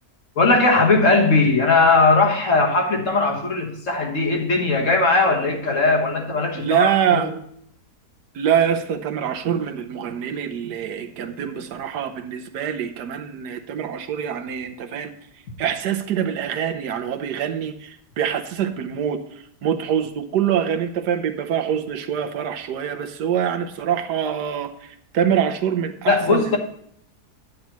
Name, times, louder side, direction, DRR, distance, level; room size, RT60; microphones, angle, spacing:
voice 1, 0.3-7.3 26.1-26.6, left 3 dB, 50° left, 1 dB, 1.7 m, -19 dB
voice 2, 6.5-7.3 8.3-15.1 15.6-26.6, right 9 dB, 85° right, 7 dB, 1.4 m, -24 dB
10.5 x 8.6 x 3.1 m, 0.69 s
omnidirectional pair, 1.8 m